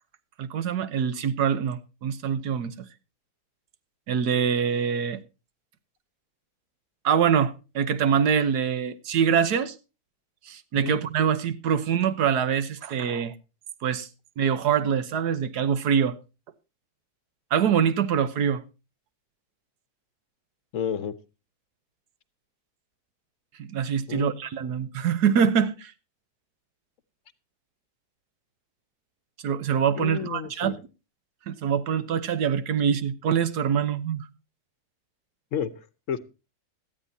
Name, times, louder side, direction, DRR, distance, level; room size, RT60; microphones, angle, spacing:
voice 1, 0.4-2.9 4.1-5.2 7.0-9.7 10.5-13.3 13.8-14.1 14.4-16.1 17.5-18.6 23.6-25.9 29.4-30.9 31.5-34.2, right 7 dB, 85° right, 1.5 m, -24 dB
voice 2, 20.7-21.1 24.1-24.4 30.0-30.7 35.5-35.7 36.1-36.2, left 8 dB, 60° left, 1.1 m, -30 dB
17.5 x 12.5 x 2.8 m
omnidirectional pair, 1.6 m